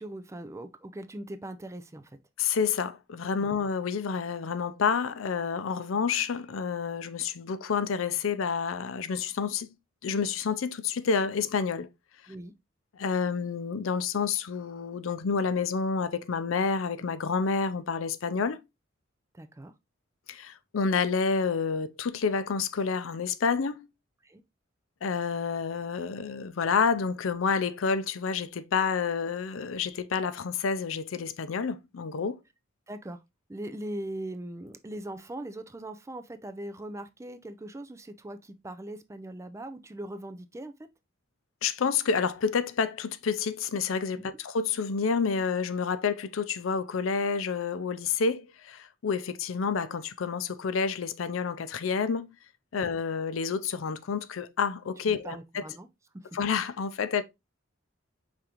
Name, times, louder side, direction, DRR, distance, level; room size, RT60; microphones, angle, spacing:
voice 1, 0.0-2.2 3.4-3.6 12.3-12.5 19.3-19.7 24.2-24.4 32.9-33.2 33.5-40.7 44.2-44.3 52.8-52.9 55.1-55.9 56.1-56.3, right 1 dB, 15° right, 0.4 m, -40 dB
voice 2, 2.4-9.7 10.0-11.9 12.9-18.6 20.3-23.9 25.0-32.4 41.6-52.3 52.7-55.6 56.3-57.2, left 5 dB, 85° left, 0.5 m, -29 dB
5.0 x 3.6 x 2.9 m
head